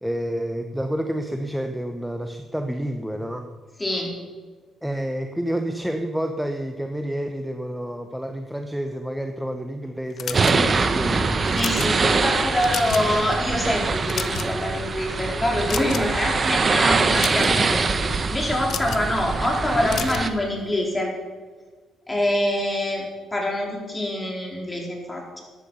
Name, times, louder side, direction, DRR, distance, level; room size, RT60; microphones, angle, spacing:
voice 1, 0.0-3.5 4.8-11.5 18.8-18.9, right 1 dB, 5° right, 6 dB, 0.9 m, -29 dB
voice 2, 3.8-4.1 11.5-17.8 18.3-21.1 22.1-25.4, left 1 dB, 15° left, -1 dB, 4.1 m, -25 dB
sound 1, 10.2-10.9 11.4-11.9 12.4-13.1 13.4-13.6 14.0-14.7 15.7-16.2 17.0-17.5 18.6-19.1 19.9-20.3, left 8 dB, 65° left, 0.9 m, -31 dB
sound 2, 10.3-20.3, right 4 dB, 35° right, 1.1 m, -23 dB
14.0 x 11.0 x 5.6 m, 1.5 s
cardioid pair, 90°, 0 cm